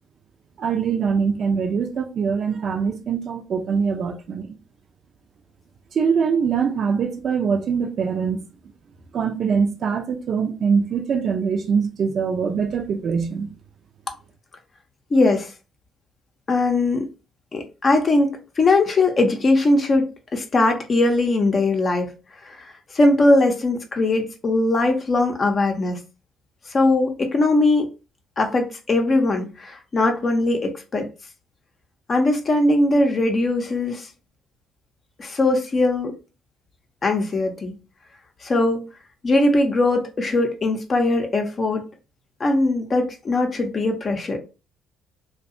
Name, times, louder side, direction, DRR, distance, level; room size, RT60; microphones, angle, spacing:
voice 1, 0.6-4.6 5.9-8.4 9.1-13.5, right 6 dB, 55° right, 0.5 m, -23 dB
voice 2, 15.1-15.5 16.5-17.1 17.5-22.1 22.4-22.6 22.9-26.0 26.7-27.9 28.4-31.1 32.1-34.1 35.2-36.1 37.0-37.8 38.4-38.9 39.2-41.9 42.4-44.4, left 2 dB, 40° left, 0.6 m, -20 dB
2.6 x 2.2 x 2.5 m
hypercardioid pair, 50°, 0 cm